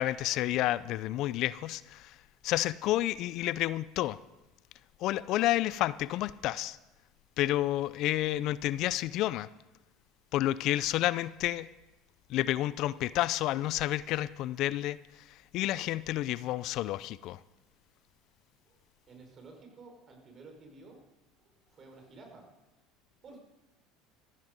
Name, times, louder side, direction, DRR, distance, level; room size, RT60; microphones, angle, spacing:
voice 1, 0.0-2.1 2.4-4.2 5.0-6.8 7.4-9.5 10.3-11.7 12.3-15.0 15.5-17.4, left 15 dB, 60° left, 18 dB, 0.5 m, -30 dB
voice 2, 18.6-21.0 21.4-22.5 23.2-23.4, right 3 dB, 40° right, 3 dB, 4.9 m, -53 dB
15.5 x 14.5 x 5.2 m, 1.0 s
supercardioid pair, 90°, 0 cm